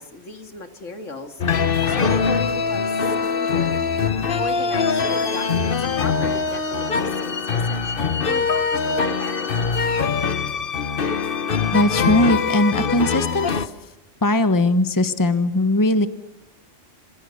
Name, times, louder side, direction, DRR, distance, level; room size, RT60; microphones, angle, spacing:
voice 1, 0.0-1.4 1.9-3.9 4.3-9.7, left 3 dB, 75° left, 7 dB, 2.5 m, -36 dB
sound 1, 1.4-13.7, left 5 dB, 50° left, 1.2 m, -22 dB
voice 2, 11.7-13.7 14.2-16.1, left 1 dB, 15° left, 10 dB, 1.2 m, -19 dB
27.5 x 26.5 x 6.6 m, 0.90 s
omnidirectional pair, 1.3 m